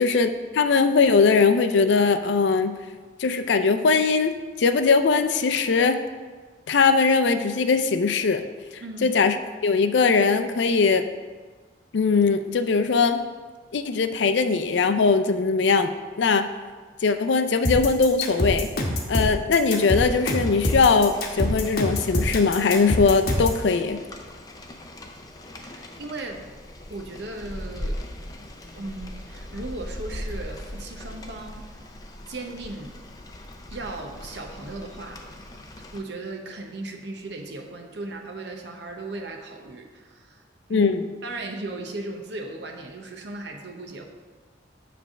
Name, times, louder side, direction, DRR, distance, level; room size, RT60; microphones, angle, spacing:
voice 1, 0.0-2.8 3.2-4.3 4.6-6.0 6.7-8.4 8.7-9.4 9.6-11.0 11.9-13.2 13.7-16.5 17.0-18.7 19.1-24.0 40.7-41.0, left 4 dB, 70° left, 9 dB, 0.4 m, -20 dB
voice 2, 8.8-9.1 25.6-26.5 26.9-28.0 28.8-31.7 32.3-32.9 33.7-35.2 35.9-40.4 40.7-40.9 41.2-44.1, right 2 dB, 65° right, 3 dB, 0.8 m, -36 dB
sound 1, 17.6-23.6, left 1 dB, 50° left, 1.0 m, -25 dB
Rain, 20.0-36.0, left 1 dB, 20° left, 0.5 m, -40 dB
7.6 x 3.4 x 6.1 m, 1.4 s
head